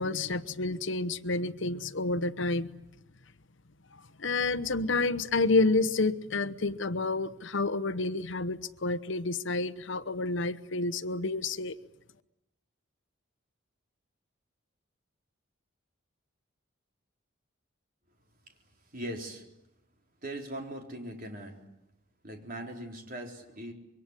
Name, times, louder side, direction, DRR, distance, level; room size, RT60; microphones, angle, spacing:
voice 1, 0.0-2.7 4.2-11.8, left 3 dB, 65° left, 13 dB, 0.9 m, -29 dB
voice 2, 18.9-19.4 20.2-21.6 22.2-23.7, right 1 dB, 45° right, 3 dB, 4.2 m, -40 dB
26.0 x 23.5 x 9.8 m, 0.89 s
head